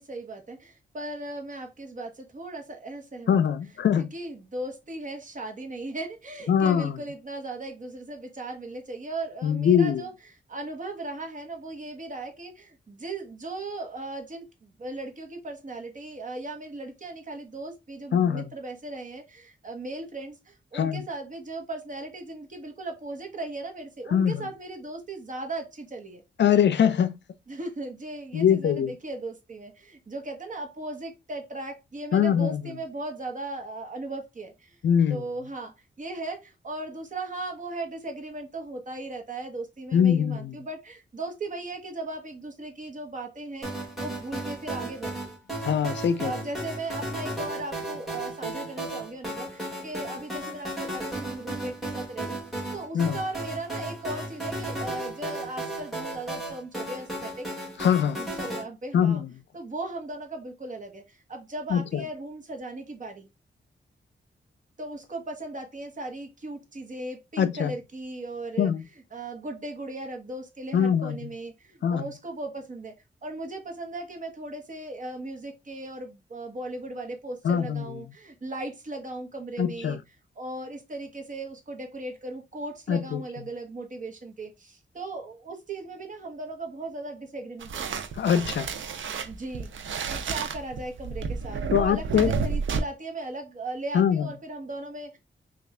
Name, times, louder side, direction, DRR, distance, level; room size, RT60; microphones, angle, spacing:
voice 1, 0.0-3.4 4.0-26.2 27.5-34.8 35.1-45.2 46.2-57.5 58.1-59.2 59.5-63.3 64.8-72.9 73.2-80.0 80.3-88.0 89.2-89.7 90.1-95.2, right 2 dB, 40° right, 1.0 m, -37 dB
voice 2, 3.3-4.1 6.5-7.0 9.4-10.0 18.1-18.4 20.7-21.0 24.1-24.4 26.4-27.2 28.3-28.9 32.1-32.6 34.8-35.2 39.9-40.6 45.6-46.3 52.9-53.2 57.8-58.2 58.9-59.3 61.7-62.0 67.4-67.7 68.6-68.8 70.7-71.2 71.8-72.0 77.4-77.8 79.6-80.0 82.9-83.2 88.2-88.7 91.7-92.3 93.9-94.3, left 8 dB, 65° left, 0.4 m, -22 dB
sound 1, 43.6-58.6, right 1 dB, ahead, 1.9 m, -35 dB
sound 2, 87.6-92.8, right 5 dB, 80° right, 0.5 m, -31 dB
3.4 x 2.4 x 3.1 m
wide cardioid pair, 105°, 20 cm